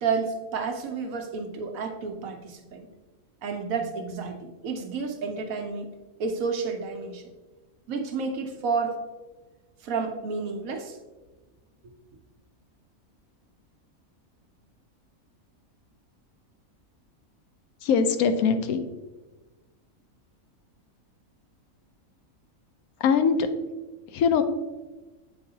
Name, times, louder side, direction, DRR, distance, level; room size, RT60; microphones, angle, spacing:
voice 1, 0.0-2.9 3.4-5.9 6.2-7.2 7.9-9.0 9.8-11.0, right 5 dB, 75° right, 4 dB, 1.2 m, -30 dB
voice 2, 17.8-18.8 23.0-23.5 24.1-24.4, left 6 dB, 85° left, 9 dB, 1.1 m, -22 dB
7.7 x 4.6 x 2.8 m, 1.2 s
omnidirectional pair, 1.5 m